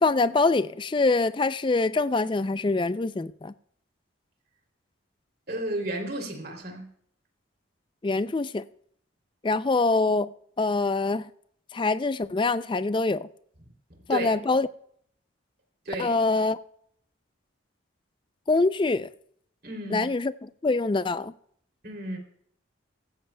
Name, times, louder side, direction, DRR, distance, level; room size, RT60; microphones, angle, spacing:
voice 1, 0.0-3.5 8.0-8.6 9.4-10.3 10.6-11.3 11.7-13.3 14.1-14.7 16.0-16.6 18.5-19.1 19.9-21.3, left 3 dB, 25° left, 0.3 m, -24 dB
voice 2, 5.5-6.9 13.9-14.3 15.8-16.1 19.6-20.1 21.8-22.2, right 1 dB, 50° right, 2.9 m, -32 dB
16.0 x 14.5 x 2.2 m
head